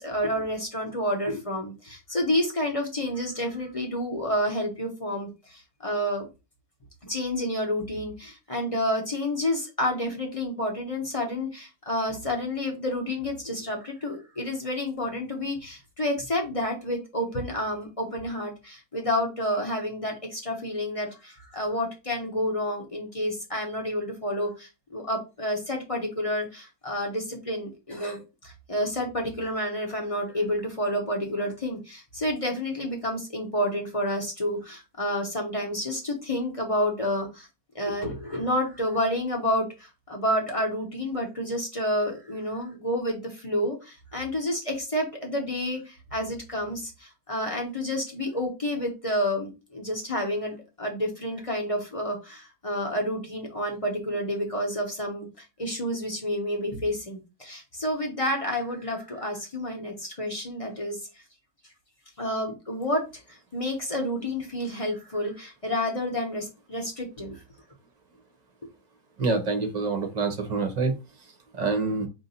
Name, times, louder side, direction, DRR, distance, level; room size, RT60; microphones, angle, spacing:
voice 1, 0.0-6.3 7.0-37.5 37.7-61.0 62.2-67.4, left 1 dB, 25° left, 0 dB, 0.9 m, -29 dB
voice 2, 69.2-70.9 71.6-72.1, right 3 dB, 35° right, 6 dB, 0.8 m, -26 dB
4.7 x 2.8 x 4.0 m, 0.28 s
omnidirectional pair, 1.6 m